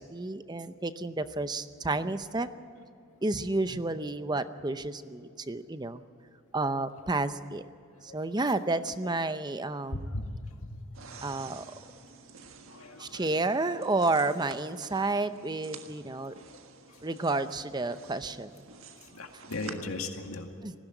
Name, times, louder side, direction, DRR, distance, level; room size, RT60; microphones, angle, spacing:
voice 1, 0.0-2.5 3.2-6.0 6.5-7.7 8.1-10.1 11.2-11.6 13.0-16.3 17.0-18.5 20.6-20.7, right 2 dB, 20° right, 11 dB, 0.7 m, -31 dB
voice 2, 10.1-10.4 12.7-13.3 15.9-16.0 16.3-16.4 16.9-17.0 19.0-20.5, left 2 dB, 85° left, 4 dB, 2.1 m, -38 dB
sound 1, 10.9-19.7, right 5 dB, 75° right, 1.6 m, -50 dB
19.5 x 16.0 x 9.2 m, 2.5 s
head